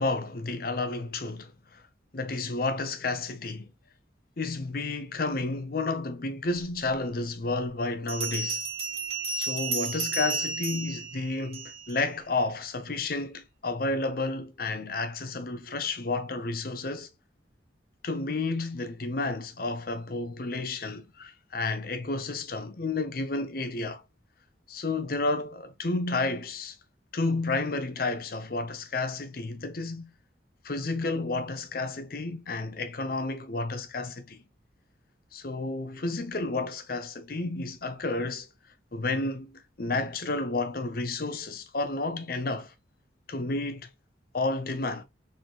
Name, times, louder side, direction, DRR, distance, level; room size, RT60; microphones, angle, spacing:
voice 1, 0.0-1.8 2.1-3.7 4.4-8.6 9.4-17.1 18.0-24.0 24.7-26.8 27.1-30.1 30.6-34.4 35.3-38.5 38.9-42.7 43.3-43.9 44.3-45.0, left 3 dB, 50° left, 0.7 m, -31 dB
Bell, 8.1-12.0, right 3 dB, 35° right, 1.6 m, -32 dB
4.2 x 3.8 x 2.9 m
head